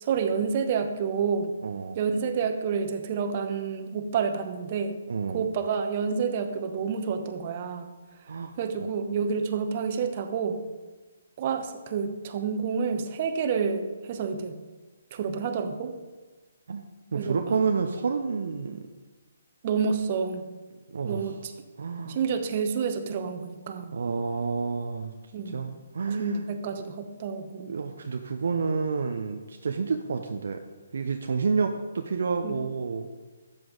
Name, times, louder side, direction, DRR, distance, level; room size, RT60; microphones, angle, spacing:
voice 1, 0.0-1.6 1.9-5.0 5.3-7.9 8.6-10.6 11.4-14.6 15.1-15.9 17.1-17.6 19.6-20.4 21.0-21.5 22.1-23.9 25.3-25.6 26.2-27.8 32.4-32.6, right 6 dB, 40° right, 7 dB, 1.0 m, -29 dB
voice 2, 1.6-2.0 5.1-5.4 8.3-8.5 16.7-16.8 17.1-18.8 20.9-21.3 21.8-22.2 23.9-25.1 25.5-26.4 27.7-30.6 30.9-33.1, right 5 dB, 60° right, 5 dB, 0.7 m, -29 dB
12.5 x 7.7 x 4.0 m, 1.3 s
figure-of-eight pair, 140°, 0 cm